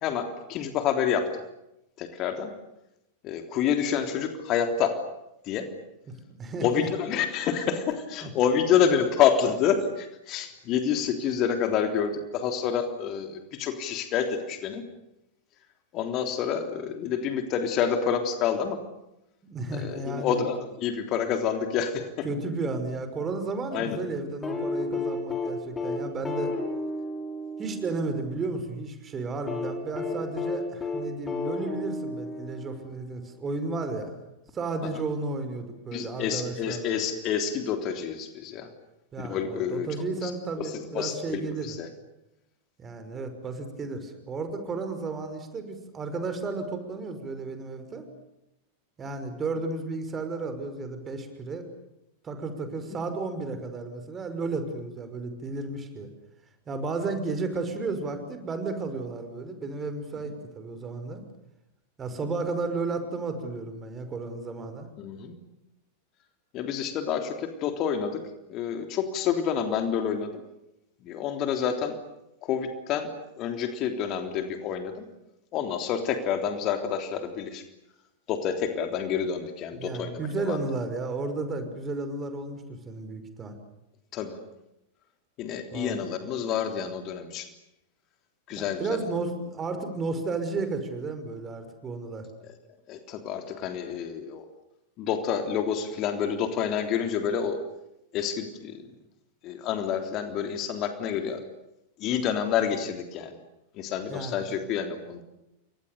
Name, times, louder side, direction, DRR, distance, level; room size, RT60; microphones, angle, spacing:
voice 1, 0.0-1.3 2.0-2.5 3.2-5.0 5.5-5.7 6.6-14.9 15.9-18.8 19.8-22.3 23.7-24.0 35.9-38.7 39.2-39.9 40.2-40.3 40.6-41.9 65.0-65.4 66.5-68.2 68.5-70.3 71.0-72.0 72.4-73.1 73.4-74.9 75.5-77.6 78.3-80.6 84.1-84.4 85.4-87.5 88.5-89.0 92.9-94.5 95.0-97.6 98.1-98.8 99.4-101.4 102.0-103.4 103.8-105.2, left 8 dB, 35° left, 6 dB, 3.5 m, -28 dB
voice 2, 6.1-6.9 8.2-8.3 19.4-20.4 22.2-26.5 27.6-34.1 34.5-36.9 39.1-41.7 42.8-48.1 49.0-51.7 52.2-56.1 56.7-61.2 62.0-64.9 79.7-83.6 85.7-86.0 88.5-92.3 104.1-104.5, right 3 dB, 20° right, 8 dB, 5.6 m, -33 dB
sound 1, 24.4-28.5 29.5-33.1 34.5-34.6, left 2 dB, 15° left, 6.0 m, -32 dB
29.5 x 26.0 x 6.9 m, 0.89 s
figure-of-eight pair, 90°, 0 cm